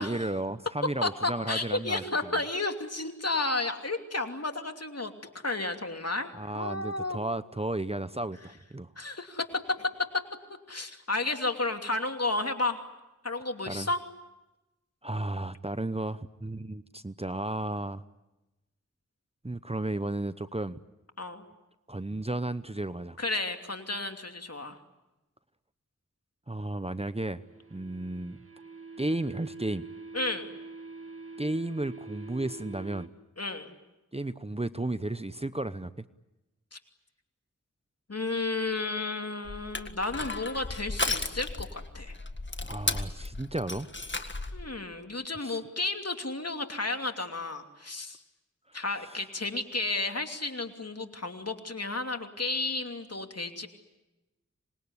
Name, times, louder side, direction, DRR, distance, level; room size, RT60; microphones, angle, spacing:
voice 1, 0.0-2.3 6.3-8.9 13.7-13.9 15.0-18.0 19.4-20.8 21.9-23.2 26.5-27.4 27.7-28.4 29.0-29.9 31.4-33.1 34.1-36.1 42.6-43.9 45.4-45.6 48.7-49.2, right 2 dB, 20° right, 13 dB, 0.9 m, -33 dB
voice 2, 1.0-5.1 5.4-7.2 9.0-9.9 10.7-12.8 13.2-14.0 21.2-21.4 23.2-24.8 30.1-30.5 33.4-33.7 36.7-36.8 38.1-42.1 44.5-48.2 48.7-53.7, left 2 dB, 55° left, 5 dB, 2.9 m, -32 dB
sound 1, 27.1-33.1, right 3 dB, 45° right, 2.1 m, -45 dB
Crushing, 39.4-44.7, left 2 dB, 40° left, 1.8 m, -34 dB
26.0 x 21.0 x 9.7 m, 1.0 s
wide cardioid pair, 45°, 29 cm